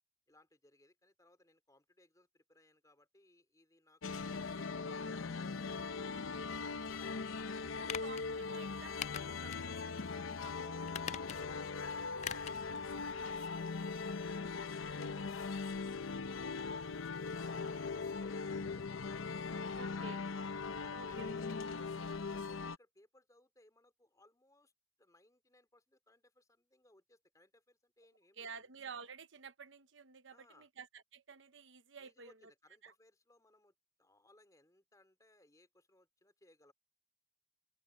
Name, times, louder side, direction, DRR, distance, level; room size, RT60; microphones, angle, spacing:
voice 1, 0.3-8.3 10.4-13.1 20.7-24.7 25.0-28.7 30.3-30.7 32.0-36.7, left 1 dB, 15° left, 3.3 m, -66 dB
sound 1, 4.0-22.8, left 4 dB, 80° left, 0.7 m, -40 dB
voice 2, 4.3-4.7 7.8-8.2 8.5-10.9 13.1-13.4 17.3-17.7 19.7-20.2 20.9-21.3 28.4-32.3 32.8-32.9, right 5 dB, 65° right, 1.0 m, -52 dB
sound 2, 7.8-8.2 9.0-9.7 10.0-10.1 10.9-11.6 12.2-12.6 12.9-13.0, left 9 dB, 35° left, 0.3 m, -43 dB
open air
head